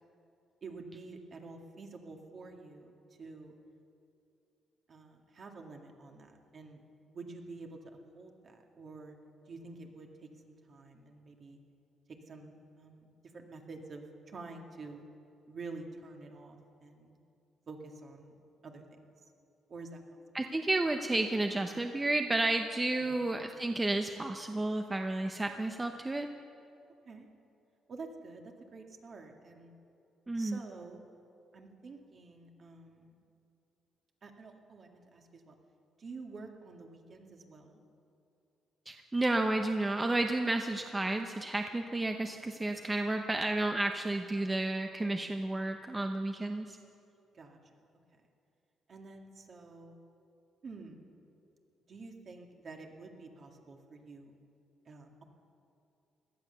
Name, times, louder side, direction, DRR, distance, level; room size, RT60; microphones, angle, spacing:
voice 1, 0.6-2.9 3.2-3.6 4.9-6.8 7.1-7.8 8.1-9.2 9.5-11.6 12.1-13.1 13.3-15.0 15.5-17.1 17.7-19.0 19.7-20.0 23.0-23.2 27.1-27.3 27.9-29.7 30.3-31.0 31.5-33.1 34.2-35.6 36.0-37.8 47.3-47.6 48.9-50.0 50.6-51.0 51.9-54.3 54.9-55.2, right 3 dB, 45° right, 3 dB, 2.0 m, -48 dB
voice 2, 20.3-26.3 30.3-30.6 38.9-46.8, right 2 dB, 20° right, 5 dB, 0.8 m, -31 dB
17.5 x 12.0 x 6.9 m, 2.6 s
cardioid pair, 90°, 0 cm